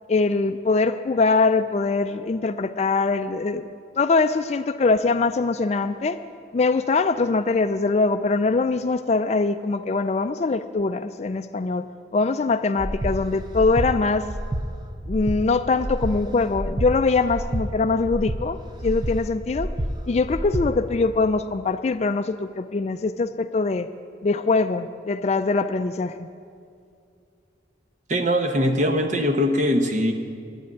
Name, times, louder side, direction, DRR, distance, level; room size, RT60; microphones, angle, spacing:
voice 1, 0.1-3.6 4.0-6.2 6.5-11.9 12.1-14.3 15.1-19.7 20.1-23.9 24.2-26.3, left 3 dB, 35° left, 11 dB, 0.3 m, -22 dB
Breathing, 12.8-13.2 13.5-13.9 14.3-14.6 15.0-15.4 15.8-16.1 16.5-16.9 17.3-17.6 18.0-18.4 18.8-19.2 19.5-19.9 20.3-20.7, right 1 dB, 25° right, 0.6 m, -27 dB
voice 2, 28.1-30.1, equal, 40° right, 5 dB, 1.0 m, -21 dB
10.0 x 9.4 x 9.2 m, 2.4 s
head